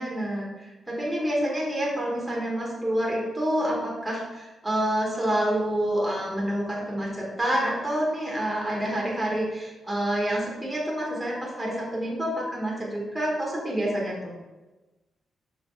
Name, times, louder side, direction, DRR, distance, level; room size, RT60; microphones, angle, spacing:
voice 1, 0.0-14.3, right 1 dB, 5° right, -4 dB, 1.5 m, -28 dB
5.2 x 5.1 x 4.7 m, 1.1 s
wide cardioid pair, 155°, 0 cm